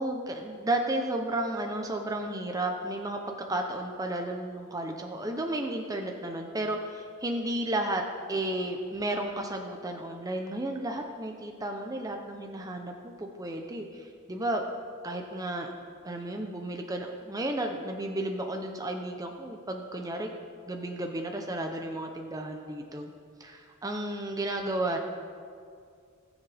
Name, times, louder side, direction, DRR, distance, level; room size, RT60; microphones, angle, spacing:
voice 1, 0.0-14.6 15.0-15.7 16.0-20.3 20.6-23.1 23.8-25.0, right 1 dB, 15° right, 3 dB, 0.6 m, -33 dB
19.0 x 7.3 x 3.4 m, 2.3 s
head